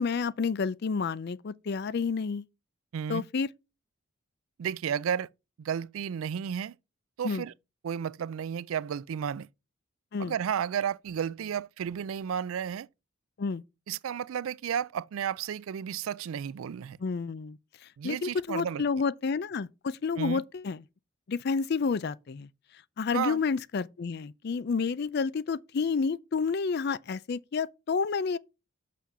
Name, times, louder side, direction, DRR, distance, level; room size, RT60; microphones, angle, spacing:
voice 1, 0.0-2.4 3.1-3.5 7.2-7.4 10.1-10.3 13.4-13.6 17.0-17.6 18.0-20.8 21.3-22.5 23.0-28.4, left 5 dB, 50° left, 0.4 m, -30 dB
voice 2, 2.9-3.2 4.6-5.3 5.6-6.8 7.2-7.5 7.8-9.5 10.2-12.9 13.9-17.0 18.0-18.8 20.2-20.4 23.1-23.4, right 8 dB, 80° right, 0.4 m, -32 dB
6.3 x 5.8 x 5.5 m
head